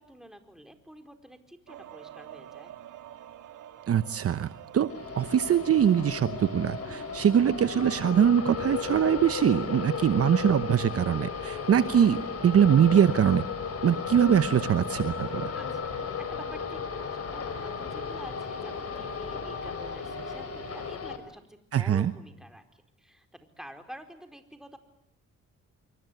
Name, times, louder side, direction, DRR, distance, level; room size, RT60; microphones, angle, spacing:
voice 1, 0.0-2.7 15.5-24.8, equal, ahead, 6 dB, 4.5 m, -48 dB
sound 1, 1.7-20.9, right 11 dB, 80° right, 2.1 m, -47 dB
voice 2, 3.9-4.9 5.2-13.4 13.8-15.5 21.7-22.1, right 9 dB, 50° right, 13 dB, 1.0 m, -23 dB
sound 2, 4.9-21.2, left 6 dB, 55° left, 4.4 m, -35 dB
27.0 x 24.0 x 9.3 m, 0.76 s
cardioid pair, 90°, 30 cm